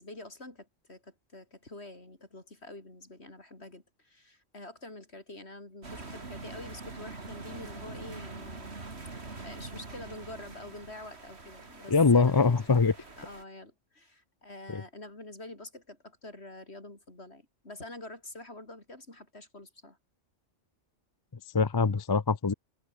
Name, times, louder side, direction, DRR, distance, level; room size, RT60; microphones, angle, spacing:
voice 1, 0.0-8.8 9.4-12.6 13.2-20.0, left 2 dB, 60° left, 5.6 m, -47 dB
sound 1, 5.8-13.4, right 3 dB, 60° right, 3.0 m, -44 dB
voice 2, 11.9-12.9 14.7-14.8 21.5-22.5, left 4 dB, 30° left, 0.5 m, -23 dB
omnidirectional pair, 1.3 m